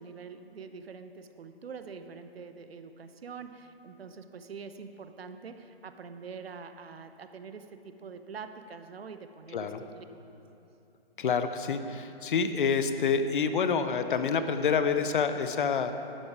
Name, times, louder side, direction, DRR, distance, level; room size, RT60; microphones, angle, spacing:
voice 1, 0.0-10.1, right 5 dB, 70° right, 9 dB, 0.8 m, -45 dB
voice 2, 9.5-9.8 11.2-15.9, left 6 dB, 55° left, 9 dB, 0.8 m, -27 dB
12.0 x 10.0 x 4.8 m, 2.9 s
hypercardioid pair, 140°, 31 cm